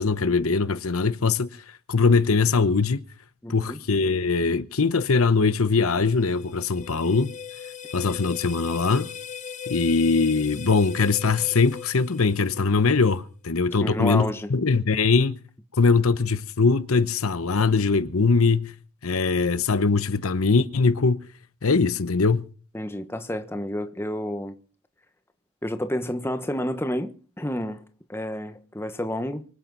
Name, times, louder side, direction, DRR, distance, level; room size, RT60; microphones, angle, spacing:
voice 1, 0.0-1.5 1.9-3.0 3.5-7.3 7.9-9.1 9.7-15.4 15.8-18.7 19.0-21.2 21.6-22.5, left 4 dB, 75° left, 0.9 m, -21 dB
voice 2, 3.4-3.8 13.8-14.5 22.7-24.6 25.6-27.1 27.4-29.5, left 1 dB, 10° left, 1.1 m, -30 dB
sound 1, 5.9-13.0, left 7 dB, 35° left, 0.9 m, -39 dB
24.5 x 8.7 x 5.4 m
head